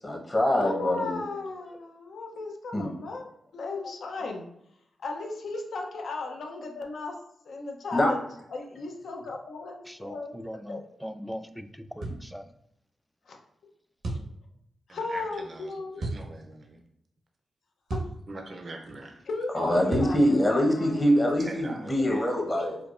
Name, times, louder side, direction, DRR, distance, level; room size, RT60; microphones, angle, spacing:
voice 1, 0.0-1.2 2.7-2.9 7.9-8.1 19.5-22.8, equal, 30° left, 0 dB, 0.9 m, -24 dB
voice 2, 0.6-4.5 5.0-7.1 7.4-8.2 8.5-10.8 13.3-13.4 14.9-16.1 17.9-18.0 19.3-21.3 22.0-22.1, left 3 dB, 75° left, 1 dB, 0.6 m, -36 dB
voice 3, 9.9-12.4, equal, ahead, 9 dB, 0.3 m, -40 dB
sound 1, 12.0-12.2 14.0-14.3 16.0-16.2 17.9-18.2 19.9-20.2, right 2 dB, 75° right, 0.9 m, -32 dB
voice 4, 14.9-15.7 16.0-16.8 18.3-19.3 21.4-22.1, right 2 dB, 55° right, 2 dB, 0.6 m, -42 dB
4.5 x 2.2 x 2.4 m, 0.74 s
cardioid pair, 55°, 0 cm